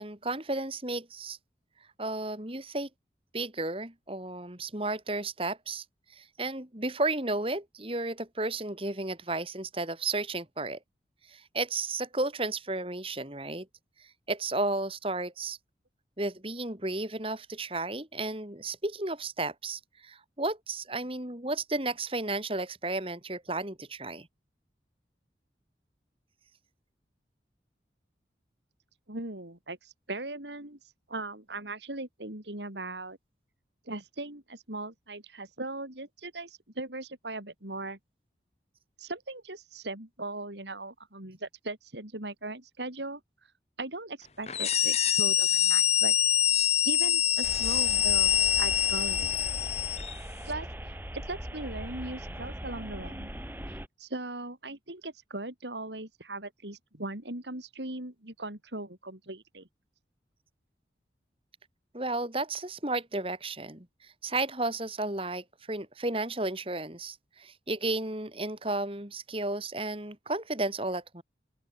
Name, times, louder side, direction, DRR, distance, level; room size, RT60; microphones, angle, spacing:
voice 1, 0.0-1.4 2.0-2.9 3.3-5.8 6.1-10.8 11.3-13.7 14.3-15.6 16.2-24.3 61.9-71.2, right 2 dB, 30° right, 3.1 m, -33 dB
voice 2, 29.1-30.8 31.1-33.2 33.9-38.0 39.0-43.2 43.8-46.2 46.8-49.4 50.5-50.7 51.1-53.3 54.0-59.7, right 2 dB, 75° right, 5.2 m, -39 dB
sound 1, 44.5-50.2, left 11 dB, 35° left, 2.4 m, -25 dB
sound 2, 47.4-53.9, equal, 10° right, 5.4 m, -40 dB
open air
head